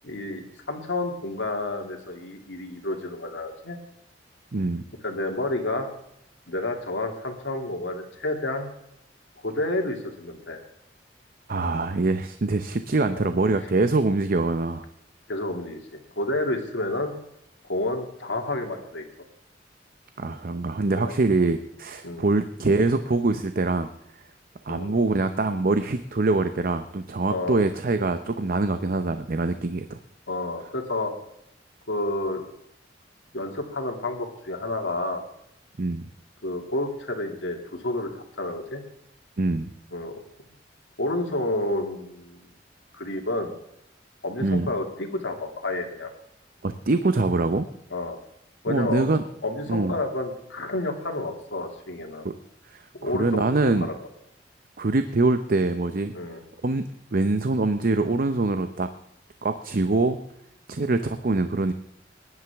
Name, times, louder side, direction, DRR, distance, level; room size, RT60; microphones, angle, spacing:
voice 1, 0.0-3.8 5.0-5.9 6.5-8.7 9.4-10.6 13.1-13.3 15.3-17.1 17.6-19.1 20.9-21.5 22.0-22.3 24.7-24.9 27.3-27.6 30.3-31.1 31.9-32.4 33.3-35.2 36.4-38.8 39.9-40.2 41.0-42.4 42.9-43.5 44.2-46.1 47.9-48.2 48.6-52.3 52.9-54.0 56.1-56.4, left 2 dB, 85° left, 3 dB, 2.5 m, -30 dB
voice 2, 4.5-4.8 11.5-14.8 20.2-23.9 24.7-30.0 35.8-36.1 39.4-39.7 44.4-44.7 46.6-47.7 48.7-49.2 49.7-50.0 52.2-52.3 52.7-53.9 54.8-56.1 56.6-56.9 57.1-58.9 59.4-60.2 60.7-61.7, right 3 dB, 50° right, 9 dB, 0.7 m, -24 dB
20.0 x 11.0 x 3.5 m, 0.78 s
head